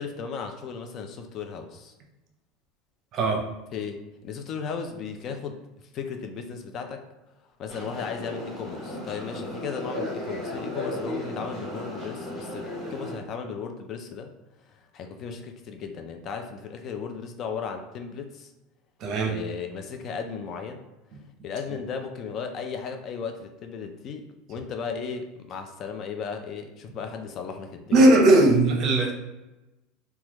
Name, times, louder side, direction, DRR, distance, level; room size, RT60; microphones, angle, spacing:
voice 1, 0.0-1.9 3.7-5.6 5.9-7.0 7.6-14.3 14.7-18.5 19.3-20.8 21.4-28.1, left 6 dB, 40° left, 5 dB, 0.4 m, -35 dB
voice 2, 3.1-3.5 19.0-19.4 27.9-29.1, right 2 dB, 40° right, 2 dB, 0.6 m, -18 dB
sound 1, 7.7-13.2, left 1 dB, 5° left, 1.2 m, -35 dB
3.2 x 2.2 x 2.9 m, 1.0 s
supercardioid pair, 135°, 0 cm